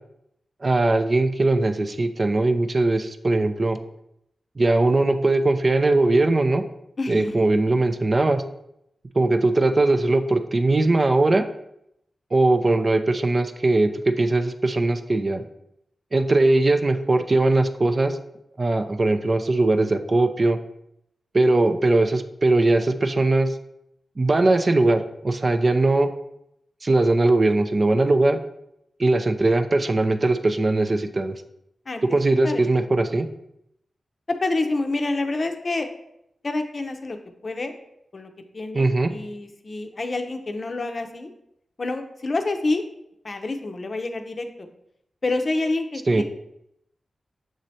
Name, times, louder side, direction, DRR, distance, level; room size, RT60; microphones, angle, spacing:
voice 1, 0.6-3.8 4.6-6.6 7.1-8.4 9.1-11.5 12.3-15.4 16.1-18.2 18.6-20.6 21.3-23.6 24.2-26.1 26.8-28.4 29.0-31.3 32.1-33.3 38.7-39.1 46.1-46.2, right 2 dB, 50° right, 8 dB, 0.4 m, -20 dB
voice 2, 7.0-7.8 31.9-32.0 32.4-32.6 34.4-35.9 36.4-37.2 37.4-37.7 38.1-41.3 41.8-42.8 43.2-44.7 45.2-46.2, left 2 dB, 55° left, 6 dB, 0.5 m, -28 dB
6.1 x 3.1 x 2.7 m, 0.79 s
cardioid pair, 40°, 0 cm